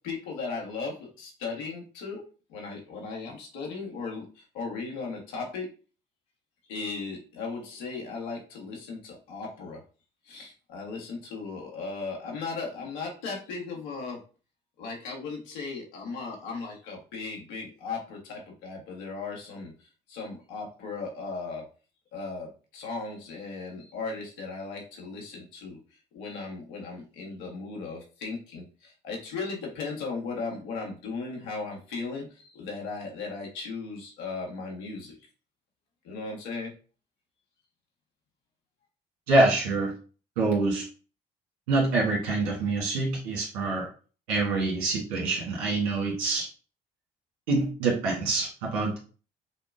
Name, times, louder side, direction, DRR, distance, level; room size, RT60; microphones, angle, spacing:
voice 1, 0.0-2.2 2.5-5.7 6.7-9.8 10.2-14.2 14.8-21.6 22.1-25.8 26.1-35.1 36.0-36.7, left 4 dB, 80° left, -1 dB, 1.5 m, -37 dB
voice 2, 39.3-39.9 40.4-40.8 41.7-43.9 44.3-46.5 47.5-49.0, right 3 dB, 90° right, -2 dB, 1.6 m, -25 dB
5.6 x 2.3 x 2.6 m, 0.36 s
supercardioid pair, 70°, 19 cm